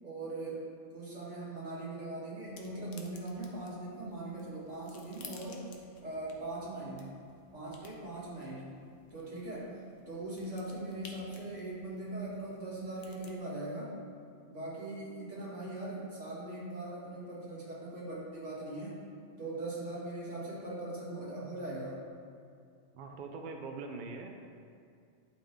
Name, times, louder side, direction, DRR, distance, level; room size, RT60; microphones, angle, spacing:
voice 1, 0.0-5.6 6.0-7.1 7.5-8.8 9.1-9.7 10.1-14.0 14.4-19.0 19.4-22.0, right 2 dB, 75° right, -7 dB, 2.2 m, -40 dB
sound 1, 2.4-13.4, left 4 dB, 90° left, 1.2 m, -56 dB
voice 2, 22.9-24.5, right 3 dB, 55° right, 3 dB, 0.6 m, -42 dB
11.0 x 3.9 x 3.4 m, 2.3 s
omnidirectional pair, 1.3 m